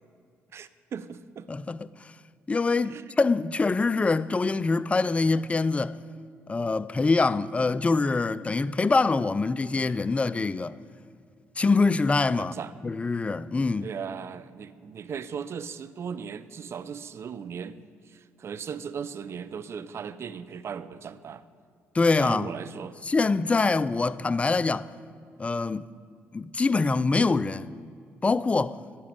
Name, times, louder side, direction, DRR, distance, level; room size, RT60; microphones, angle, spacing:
voice 1, 0.5-1.5 2.9-3.1 12.4-12.7 13.8-21.4 22.2-22.9, right 7 dB, 55° right, 0.5 m, -37 dB
voice 2, 1.5-1.9 2.5-6.0 6.5-10.7 11.6-12.6 12.8-13.9 21.9-22.5 23.1-24.9 25.4-25.9 26.3-27.7 28.2-28.8, left 3 dB, 25° left, 0.3 m, -24 dB
11.0 x 6.1 x 8.4 m
supercardioid pair, 70°, 5 cm